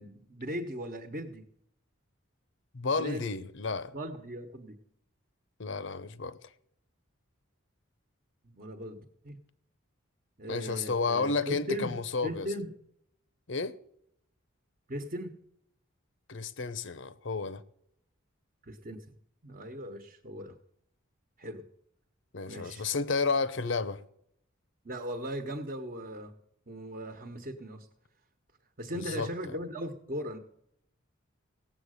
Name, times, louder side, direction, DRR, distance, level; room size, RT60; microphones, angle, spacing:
voice 1, 0.0-1.4 3.0-3.2 3.9-4.7 8.4-9.4 10.4-12.7 14.9-15.4 18.6-19.2 19.4-20.6 21.4-21.6 22.5-22.9 24.8-26.3 26.7-27.9 28.8-30.4, equal, 40° right, 1.2 m, -38 dB
voice 2, 2.7-3.9 5.6-6.4 10.5-12.5 13.5-13.8 16.3-17.6 22.3-24.0 28.9-29.3, left 4 dB, 60° left, 0.7 m, -31 dB
17.0 x 7.7 x 6.5 m
head